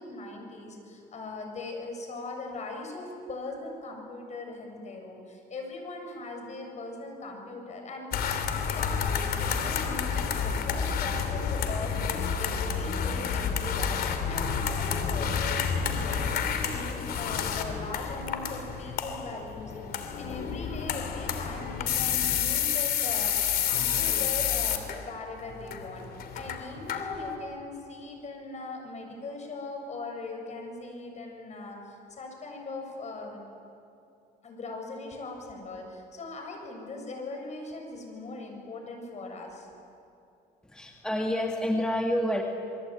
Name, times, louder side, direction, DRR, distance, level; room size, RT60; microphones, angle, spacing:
voice 1, 0.0-26.1 26.3-33.4 34.4-39.7, left 2 dB, 45° left, 3 dB, 7.3 m, -40 dB
sound 1, 8.1-27.4, left 7 dB, 65° left, 3.0 m, -30 dB
voice 2, 40.7-42.4, left 1 dB, 5° left, 1 dB, 2.1 m, -28 dB
28.5 x 22.5 x 9.2 m, 2.6 s
cardioid pair, 110°, 17 cm